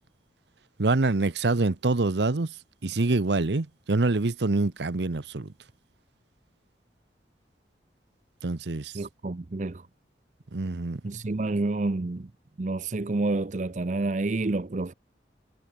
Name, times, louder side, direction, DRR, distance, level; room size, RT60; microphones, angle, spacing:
voice 1, 0.8-2.5 2.8-5.5 8.4-8.9 10.5-11.0, right 3 dB, 75° right, 0.9 m, -25 dB
voice 2, 8.9-9.8 11.0-12.3 12.6-14.9, right 2 dB, 40° right, 0.6 m, -29 dB
head